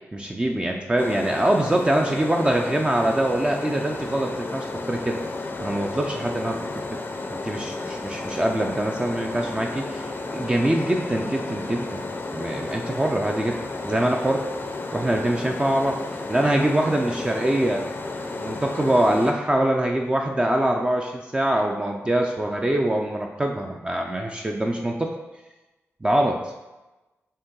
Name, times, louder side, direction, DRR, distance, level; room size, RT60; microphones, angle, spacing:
voice 1, 0.1-5.2 5.6-6.8 7.3-12.0 12.3-13.6 13.8-14.5 14.9-16.0 16.3-17.8 18.4-25.1 26.0-26.4, right 1 dB, 20° right, 1 dB, 0.4 m, -24 dB
sound 1, 1.0-19.3, left 2 dB, 40° left, 0.5 m, -33 dB
5.3 x 2.3 x 3.7 m, 1.1 s
cardioid pair, 65°, 5 cm